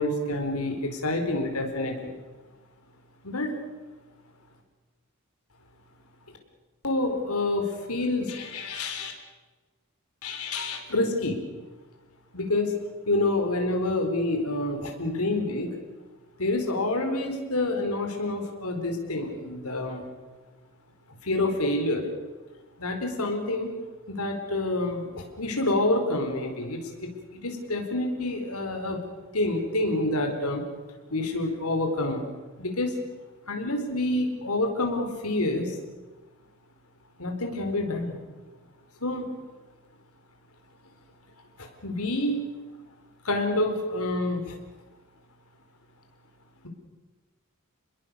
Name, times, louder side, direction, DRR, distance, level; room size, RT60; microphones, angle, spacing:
voice 1, 0.0-2.1 3.2-3.5 6.8-9.1 10.2-11.4 12.3-12.7 13.1-15.7 16.4-20.0 21.2-22.1 22.8-23.7 24.1-29.0 29.3-30.6 31.1-32.3 32.6-33.0 33.5-35.8 37.2-38.2 39.0-39.3 41.6-42.4 43.2-44.5, left 2 dB, 80° left, 4 dB, 4.4 m, -28 dB
28.5 x 21.5 x 6.9 m, 1.3 s
head